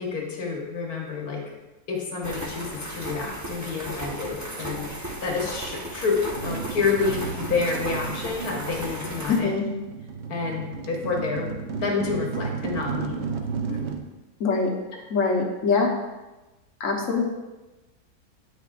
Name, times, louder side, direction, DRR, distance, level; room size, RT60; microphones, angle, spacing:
voice 1, 0.0-1.6 1.9-9.6 10.3-11.5 11.8-13.2 13.7-13.8 14.9-15.0, left 4 dB, 80° left, -1 dB, 1.6 m, -29 dB
sound 1, 2.2-9.4, right 1 dB, 20° right, 0.5 m, -35 dB
sound 2, 6.3-14.0, right 5 dB, 60° right, 0.8 m, -33 dB
voice 2, 9.3-9.6 14.4-14.7 15.1-15.9 16.8-17.2, left 4 dB, 60° left, 0 dB, 1.3 m, -23 dB
8.6 x 6.1 x 2.5 m, 1.1 s
omnidirectional pair, 1.6 m